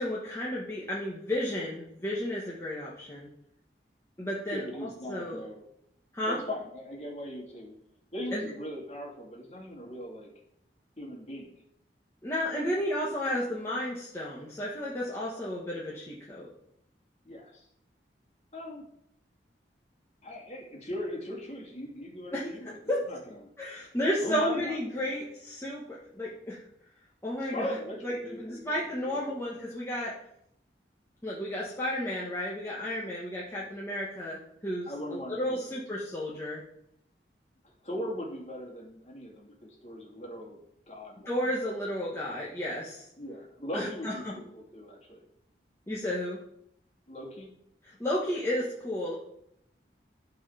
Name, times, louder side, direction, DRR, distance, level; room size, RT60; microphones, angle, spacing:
voice 1, 0.0-3.3 4.2-5.4 6.1-6.4 8.3-8.5 12.2-16.5 22.3-22.5 22.9-23.0 23.6-26.6 27.2-27.8 28.0-30.1 31.2-36.6 41.2-43.1 43.7-44.3 45.9-46.4 47.8-49.1, left 1 dB, 15° left, -6 dB, 1.4 m, -32 dB
voice 2, 4.5-5.6 6.3-7.7 8.1-10.3 11.0-11.5 17.2-17.6 18.5-18.8 20.2-22.8 23.1-23.3 24.2-24.8 25.1-25.2 27.4-29.4 34.9-35.8 37.8-40.6 40.9-41.3 43.2-45.2 47.1-47.5, left 1 dB, 40° left, -2 dB, 2.6 m, -39 dB
12.5 x 4.7 x 5.7 m, 0.74 s
head